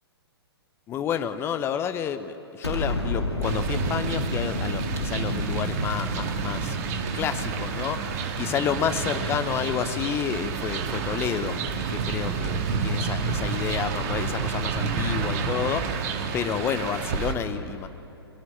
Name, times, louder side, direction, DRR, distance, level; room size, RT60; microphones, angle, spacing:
voice 1, 0.9-6.8 7.1-11.6 11.9-16.1 16.3-17.9, left 8 dB, 20° left, 11 dB, 0.7 m, -30 dB
Explosion, 2.6-7.8, left 2 dB, 85° left, 2.5 m, -31 dB
sound 1, 3.4-17.3, right 5 dB, 40° right, 1.6 m, -29 dB
23.0 x 11.5 x 9.9 m, 2.8 s
figure-of-eight pair, 120°, 13 cm